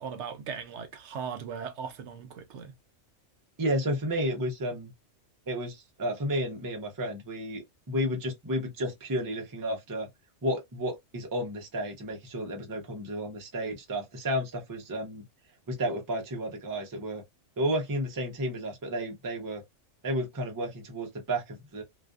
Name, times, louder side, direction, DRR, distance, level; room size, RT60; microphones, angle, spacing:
voice 1, 0.0-2.7, right 6 dB, 70° right, 0.8 m, -38 dB
voice 2, 3.6-4.9 5.5-10.1 10.4-15.2 15.7-17.2 17.6-19.6 20.0-21.8, equal, 25° right, 0.4 m, -32 dB
2.5 x 2.4 x 2.2 m
omnidirectional pair, 1.3 m